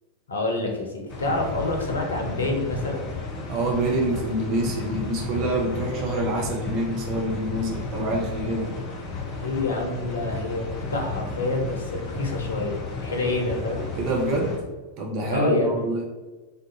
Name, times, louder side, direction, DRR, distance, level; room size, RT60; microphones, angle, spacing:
voice 1, 0.3-3.1 9.3-13.9 15.3-15.7, left 2 dB, 70° left, 2 dB, 0.6 m, -27 dB
sound 1, 1.1-14.6, left 3 dB, 35° left, 0.6 m, -33 dB
voice 2, 3.5-8.7 13.9-14.5 15.0-16.0, right 1 dB, 40° right, -1 dB, 0.6 m, -26 dB
3.5 x 2.5 x 2.7 m, 1.2 s
figure-of-eight pair, 90°, 0 cm